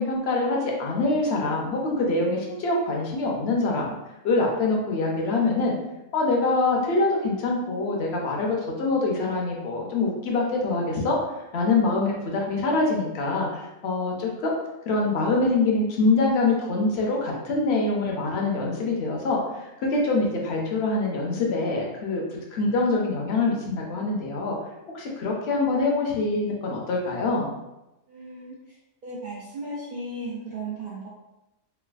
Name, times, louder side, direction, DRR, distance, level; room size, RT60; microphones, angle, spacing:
voice 1, 0.0-3.9 4.2-5.8 6.1-11.2 11.5-14.5 14.9-24.6 24.9-27.5, left 3 dB, 60° left, -1 dB, 0.8 m, -24 dB
voice 2, 28.1-28.8 29.0-31.1, right 2 dB, 55° right, -7 dB, 0.5 m, -36 dB
3.2 x 2.3 x 2.3 m, 0.94 s
omnidirectional pair, 1.4 m